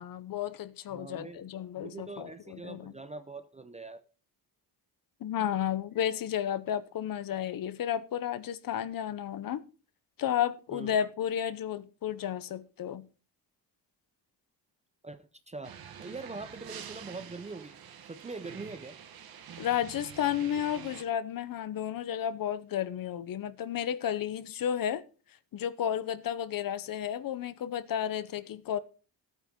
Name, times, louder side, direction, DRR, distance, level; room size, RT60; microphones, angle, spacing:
voice 1, 0.0-2.9 5.2-9.6 10.2-13.1 19.6-25.0 25.5-28.8, left 10 dB, 50° left, 0.8 m, -32 dB
voice 2, 0.9-1.4 1.8-4.0 10.7-11.0 15.0-17.8 18.0-19.0, right 3 dB, 15° right, 0.5 m, -43 dB
sound 1, 15.6-21.0, right 8 dB, 55° right, 1.5 m, -47 dB
15.0 x 9.1 x 3.7 m
cardioid pair, 175°, 43 cm